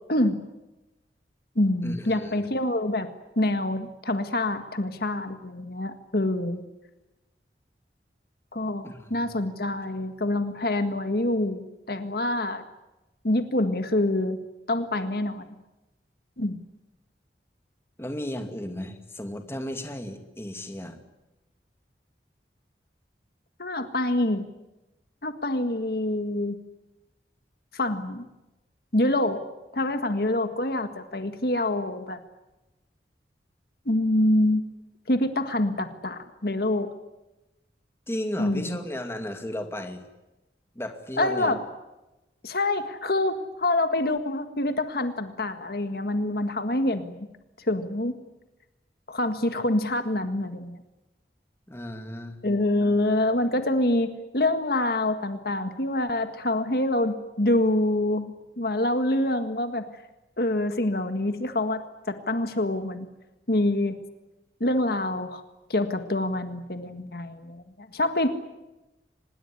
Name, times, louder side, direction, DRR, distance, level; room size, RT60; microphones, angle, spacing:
voice 1, 0.1-0.4 1.6-3.1 3.4-6.6 8.5-12.6 13.2-14.4 14.7-15.6 16.4-16.6 23.6-24.4 25.2-26.6 27.7-28.3 28.9-29.4 29.7-32.2 33.9-34.6 35.1-36.9 38.4-38.8 41.2-41.6 42.4-47.3 47.6-48.2 49.1-50.8 52.4-59.9 60.4-63.1 63.5-64.0 64.6-65.4 65.7-68.3, left 1 dB, 60° left, 8 dB, 1.8 m, -26 dB
voice 2, 1.8-2.5 8.8-9.1 18.0-21.0 38.1-40.0 40.7-41.5 51.7-52.4, left 1 dB, 15° left, 6 dB, 2.3 m, -34 dB
25.5 x 20.5 x 9.9 m, 1.0 s
head